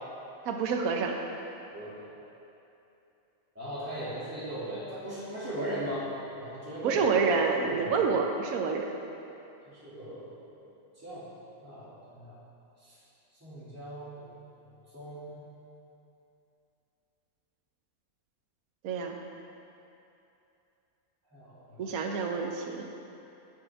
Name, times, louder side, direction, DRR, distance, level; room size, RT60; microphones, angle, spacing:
voice 1, 0.4-1.2 6.8-8.9 18.8-19.2 21.8-22.9, right 5 dB, 75° right, 2 dB, 1.2 m, -28 dB
voice 2, 1.7-2.0 3.5-6.1 6.3-7.0 7.6-8.0 9.7-10.3 11.0-11.3 11.6-12.3 12.8-13.0 13.4-14.2 14.9-15.4 21.3-21.9, right 1 dB, 10° right, -11 dB, 2.5 m, -38 dB
17.0 x 6.0 x 3.6 m, 2.8 s
omnidirectional pair, 1.5 m